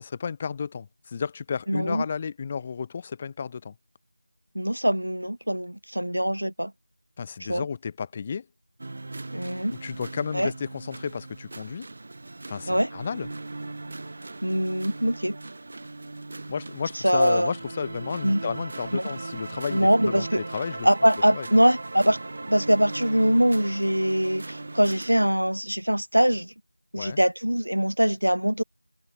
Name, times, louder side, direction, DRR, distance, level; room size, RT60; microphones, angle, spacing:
voice 1, 0.0-3.7 7.2-8.5 9.8-11.9 12.5-13.3 16.5-20.9 21.3-21.5 26.9-27.2, left 6 dB, 15° left, 6.4 m, -32 dB
voice 2, 1.7-2.0 4.5-6.7 7.5-7.6 9.3-9.7 10.3-10.5 12.7-12.9 14.4-15.4 17.0-17.5 18.2-18.4 18.9-19.1 19.7-20.5 20.8-22.2 22.5-26.5 26.9-28.6, equal, 80° right, 3.0 m, -23 dB
sound 1, 8.8-25.3, right 2 dB, 35° right, 6.0 m, -38 dB
figure-of-eight pair, 170°, 0 cm